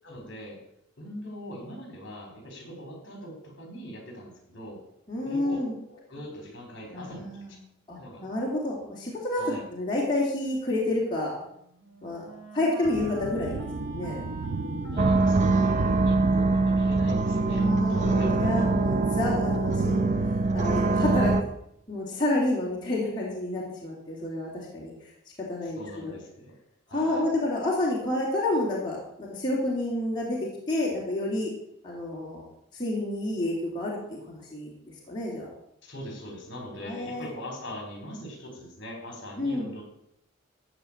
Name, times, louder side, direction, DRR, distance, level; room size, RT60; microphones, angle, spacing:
voice 1, 0.0-0.6 1.0-4.8 5.2-7.3 8.0-8.3 9.4-9.6 14.9-18.7 25.6-26.5 26.9-27.3 35.8-39.8, equal, 55° left, 1 dB, 4.4 m, -41 dB
voice 2, 5.1-5.7 6.9-7.5 7.9-11.3 12.0-12.3 12.5-13.6 13.8-14.9 17.5-19.9 20.5-21.3 21.9-24.9 25.5-26.2 26.9-31.5 31.8-32.4 32.7-34.7 35.1-35.5 36.8-37.3 39.4-39.7, left 1 dB, 20° left, -5 dB, 3.0 m, -29 dB
Wind instrument woodwind instrument, 11.3-17.1, right 1 dB, 65° right, 2.2 m, -44 dB
sound 1, 12.8-20.4, right 4 dB, 85° right, 0.5 m, -35 dB
sound 2, 15.0-21.4, right 3 dB, 35° right, 0.7 m, -23 dB
14.5 x 5.0 x 8.7 m, 0.77 s
head